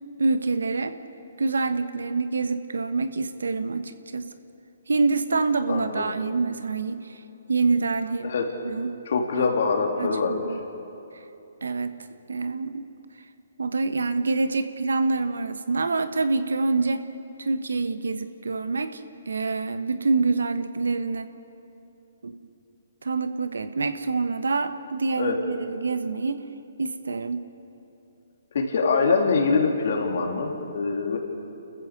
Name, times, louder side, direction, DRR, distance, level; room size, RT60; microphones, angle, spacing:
voice 1, 0.2-0.9 1.4-4.2 4.9-7.2 7.5-8.3 8.6-9.0 9.4-9.5 10.0-10.6 11.6-12.0 12.3-12.9 13.6-17.0 17.4-19.0 19.3-21.3 22.2-22.4 23.0-26.4 26.8-27.4, right 3 dB, 85° right, 10 dB, 1.3 m, -26 dB
voice 2, 5.7-6.1 8.2-8.5 9.1-10.4 25.2-25.4 28.5-31.2, left 4 dB, 60° left, 1 dB, 3.6 m, -24 dB
29.0 x 15.0 x 6.7 m, 2.9 s
hypercardioid pair, 145°, 0 cm